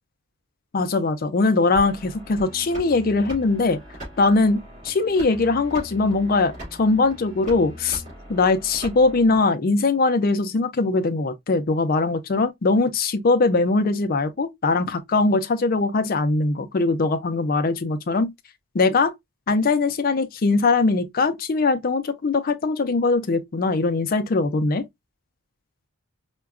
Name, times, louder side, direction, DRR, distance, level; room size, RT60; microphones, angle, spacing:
voice 1, 0.7-3.8 4.2-8.0 8.3-18.3 18.7-19.1 19.5-24.8, left 3 dB, 40° left, 0.4 m, -21 dB
sound 1, 1.7-9.4, equal, 35° right, 2.1 m, -40 dB
4.6 x 2.2 x 2.3 m
head